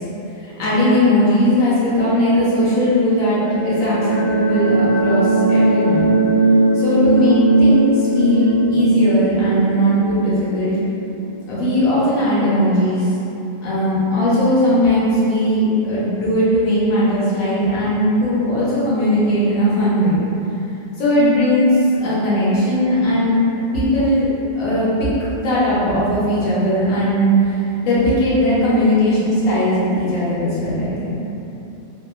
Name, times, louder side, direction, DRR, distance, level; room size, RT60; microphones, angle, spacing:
voice 1, 0.4-6.1 6.7-10.7 11.4-13.1 13.6-20.2 21.0-23.4 23.7-24.3 24.6-27.5 27.8-31.2, equal, 90° left, -10 dB, 1.1 m, -18 dB
sound 1, 3.1-11.7, right 2 dB, 55° left, 0.5 m, -18 dB
2.8 x 2.2 x 2.3 m, 2.9 s
omnidirectional pair, 1.4 m